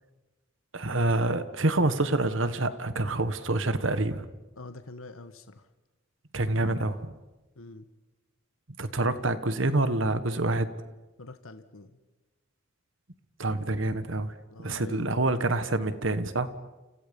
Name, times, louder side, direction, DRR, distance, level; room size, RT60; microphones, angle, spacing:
voice 1, 0.7-4.3 6.3-7.1 8.8-10.7 13.4-14.3 14.6-16.5, right 2 dB, 65° right, 11 dB, 1.6 m, -27 dB
voice 2, 4.6-5.7 7.6-7.9 11.2-12.0 14.5-15.2, left 2 dB, 85° left, 9 dB, 1.5 m, -45 dB
30.0 x 29.5 x 5.5 m, 1.1 s
head